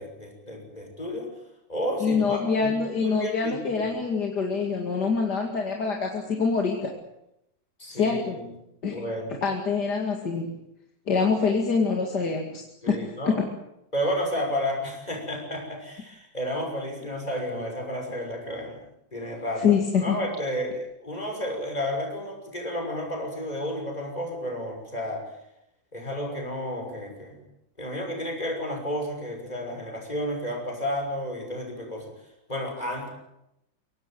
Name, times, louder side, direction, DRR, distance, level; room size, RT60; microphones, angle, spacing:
voice 1, 0.0-1.3 1.7-3.9 7.8-8.4 8.9-9.4 12.8-13.4 13.9-18.8 19.1-19.7 20.0-25.3 25.9-27.4 27.8-32.1 32.5-33.1, equal, 20° left, 2 dB, 6.4 m, -32 dB
voice 2, 2.0-6.9 7.9-8.4 8.8-9.0 9.4-10.5 11.1-13.4 19.6-20.2, left 5 dB, 60° left, 2 dB, 2.8 m, -25 dB
23.5 x 18.5 x 9.2 m, 0.84 s
omnidirectional pair, 2.1 m